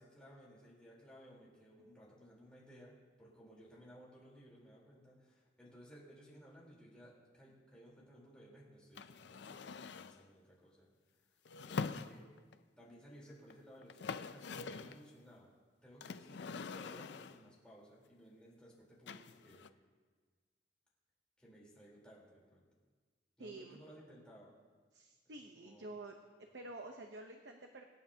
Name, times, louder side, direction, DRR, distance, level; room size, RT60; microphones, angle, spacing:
voice 1, 0.0-10.9 11.6-12.2 12.8-15.5 15.8-19.6 21.4-22.7 23.4-24.5 25.5-25.9, equal, 5° left, -6 dB, 3.8 m, -58 dB
sound 1, 9.0-10.2 11.5-12.6 13.5-13.6 13.8-15.0 16.0-17.5 19.1-19.7, left 5 dB, 80° left, 0.5 m, -44 dB
voice 2, 23.4-23.8 24.9-26.1 26.5-27.8, right 2 dB, 80° right, 3 dB, 0.9 m, -49 dB
26.0 x 9.3 x 2.8 m, 1.5 s
head